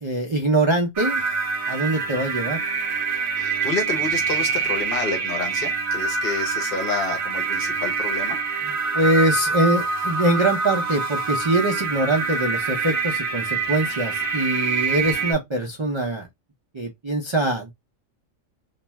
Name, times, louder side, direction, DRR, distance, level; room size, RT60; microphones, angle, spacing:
voice 1, 0.0-1.2 1.7-2.6 8.6-16.3 16.7-17.7, right 2 dB, 50° right, 0.3 m, -23 dB
sound 1, 1.0-15.3, right 4 dB, 65° right, 0.8 m, -25 dB
voice 2, 3.4-8.4, left 4 dB, 55° left, 0.8 m, -29 dB
2.5 x 2.2 x 3.0 m
omnidirectional pair, 1.4 m